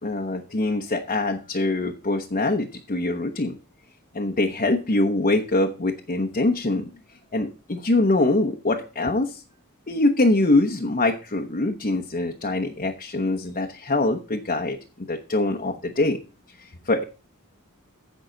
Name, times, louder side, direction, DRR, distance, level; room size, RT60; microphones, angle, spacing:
voice 1, 0.0-3.6 4.1-6.9 7.3-9.4 9.9-14.8 15.1-16.2 16.6-17.0, left 2 dB, 35° left, 3 dB, 1.0 m, -23 dB
15.5 x 5.7 x 4.0 m, 0.33 s
head